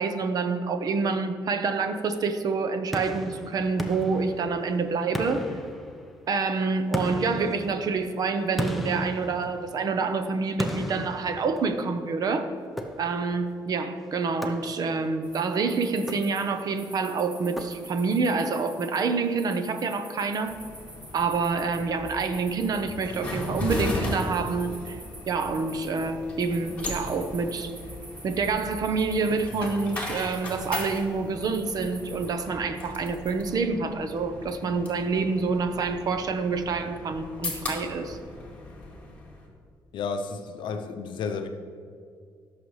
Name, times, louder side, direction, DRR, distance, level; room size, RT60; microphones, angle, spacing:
voice 1, 0.0-5.4 6.3-12.5 13.0-20.6 21.1-25.0 25.3-27.7 28.2-38.2, right 4 dB, 50° right, 8 dB, 0.8 m, -27 dB
sound 1, 2.9-4.7 5.1-6.3 6.9-10.0 10.6-12.0 12.8-13.4 14.4-15.1 15.9-16.7 17.6-18.2, equal, ahead, 0.7 m, -35 dB
sound 2, 15.2-32.3, right 1 dB, 15° right, 2.4 m, -47 dB
sound 3, 20.4-39.5, left 2 dB, 15° left, 2.4 m, -37 dB
voice 2, 39.9-41.5, left 5 dB, 70° left, 6 dB, 0.6 m, -32 dB
16.5 x 6.9 x 3.2 m, 2.3 s
cardioid pair, 130°, 8 cm